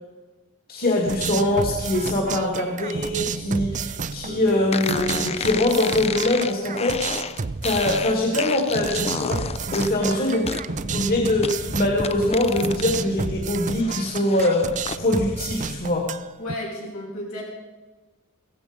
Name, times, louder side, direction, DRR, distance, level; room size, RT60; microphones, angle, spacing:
voice 1, 0.7-7.1 7.6-10.4 10.9-16.1, left 1 dB, 45° left, 0 dB, 2.4 m, -23 dB
sound 1, 1.1-16.5, right 5 dB, 35° right, 0.5 m, -31 dB
sound 2, 4.7-13.0 13.4-15.0, left 5 dB, 30° left, 0.6 m, -31 dB
voice 2, 10.0-10.5 16.4-17.4, left 1 dB, 85° left, -4 dB, 7.5 m, -33 dB
16.5 x 15.5 x 5.3 m, 1.2 s
head